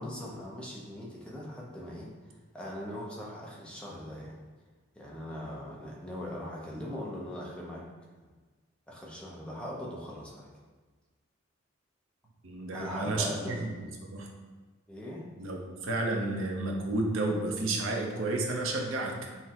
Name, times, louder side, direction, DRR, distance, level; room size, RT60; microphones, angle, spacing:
voice 1, 0.0-2.1 2.5-4.4 4.9-7.9 8.9-10.5 12.7-13.6 14.9-15.3, left 1 dB, 5° left, -4 dB, 0.6 m, -40 dB
voice 2, 12.4-13.3 13.6-14.3 15.4-19.3, right 2 dB, 85° right, 1 dB, 0.6 m, -31 dB
5.7 x 2.1 x 2.9 m, 1.3 s
head